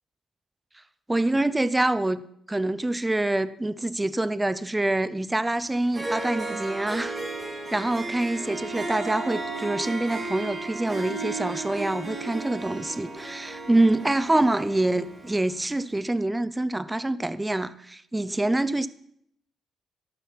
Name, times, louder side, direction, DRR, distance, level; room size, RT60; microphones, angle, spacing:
voice 1, 1.1-7.1 7.7-18.9, right 2 dB, 15° right, 0.6 m, -26 dB
Harp, 5.6-5.7 5.9-15.5, right 3 dB, 30° right, 4.4 m, -34 dB
13.5 x 12.0 x 4.1 m
cardioid pair, 90°, 0 cm